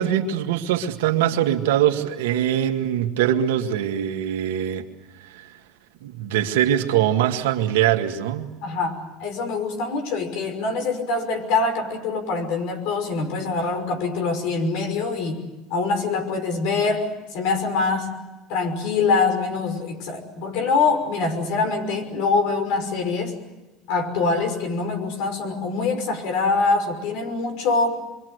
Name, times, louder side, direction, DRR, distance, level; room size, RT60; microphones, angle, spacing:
voice 1, 0.0-4.9 5.2-5.5 6.0-8.5, right 10 dB, 85° right, 4 dB, 2.1 m, -22 dB
voice 2, 8.6-15.4 15.7-18.2 18.5-23.4 23.9-28.0, left 4 dB, 70° left, 5 dB, 5.8 m, -24 dB
26.5 x 24.0 x 8.1 m, 1.1 s
supercardioid pair, 90°, 0 cm